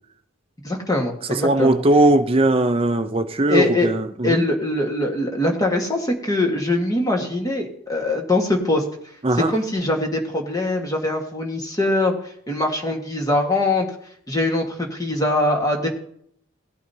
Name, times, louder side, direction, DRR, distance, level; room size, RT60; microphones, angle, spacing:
voice 1, 0.6-1.8 3.5-3.9 4.2-8.8 9.3-13.9 14.3-15.9, left 2 dB, 20° left, 1.6 m, -22 dB
voice 2, 1.3-4.4 9.2-9.5, right 2 dB, 30° right, 0.6 m, -19 dB
17.0 x 8.9 x 2.8 m
head